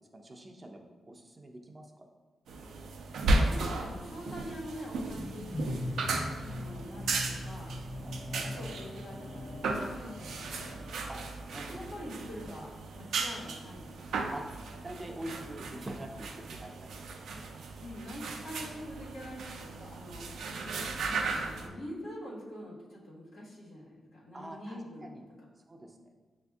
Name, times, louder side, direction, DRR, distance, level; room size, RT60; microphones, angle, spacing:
voice 1, 0.0-2.1 8.0-8.7 11.1-11.2 11.5-11.8 14.3-14.5 14.8-16.9 24.3-25.2 25.7-26.1, right 1 dB, 25° right, 2 dB, 0.4 m, -45 dB
sound 1, 2.5-21.7, right 3 dB, 90° right, 0.4 m, -36 dB
voice 2, 3.3-5.5 6.4-7.8 8.4-10.7 11.5-14.3 17.8-20.3 20.9-25.1, equal, 85° left, -7 dB, 1.4 m, -45 dB
sound 2, 4.9-11.2, left 1 dB, 35° left, 0.4 m, -41 dB
6.6 x 2.6 x 2.3 m, 1.4 s
cardioid pair, 100°, 0 cm